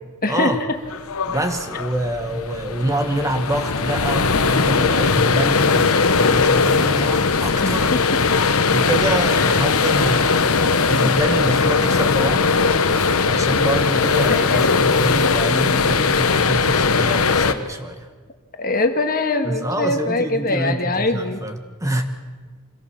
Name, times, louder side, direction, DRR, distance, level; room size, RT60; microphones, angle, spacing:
voice 1, 0.2-0.8 7.6-8.2 9.3-9.6 14.3-14.8 18.6-21.4, left 2 dB, 40° left, 6 dB, 1.7 m, -23 dB
sound 1, 0.9-17.5, left 4 dB, 70° left, 1.1 m, -19 dB
voice 2, 1.3-8.0 8.7-12.5 12.9-18.1 19.4-22.0, right 1 dB, 15° right, 6 dB, 1.4 m, -26 dB
25.5 x 17.0 x 7.4 m, 1.4 s
head